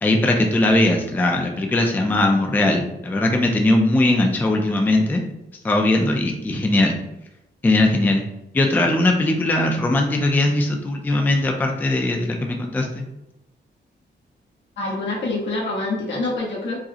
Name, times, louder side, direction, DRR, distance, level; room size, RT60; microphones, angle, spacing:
voice 1, 0.0-5.2 5.6-7.0 7.6-8.2 8.5-13.0, left 2 dB, 10° left, 2 dB, 0.3 m, -19 dB
voice 2, 14.8-16.8, left 2 dB, 85° left, -3 dB, 1.2 m, -26 dB
4.7 x 2.0 x 2.7 m, 0.89 s
wide cardioid pair, 165°, 19 cm